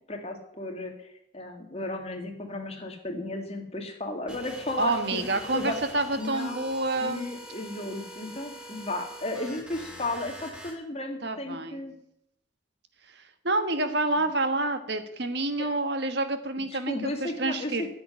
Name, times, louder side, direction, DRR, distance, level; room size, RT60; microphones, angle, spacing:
voice 1, 0.1-1.1 1.3-5.2 5.5-5.8 6.2-6.6 7.0-11.9 15.6-15.7 16.9-17.9, left 2 dB, 30° left, 3 dB, 2.1 m, -34 dB
sound 1, 4.3-10.7, equal, 5° right, 2.6 m, -43 dB
voice 2, 4.8-7.3 11.2-11.8 13.1-17.9, right 2 dB, 55° right, 8 dB, 1.4 m, -28 dB
10.5 x 7.8 x 9.9 m, 0.75 s
head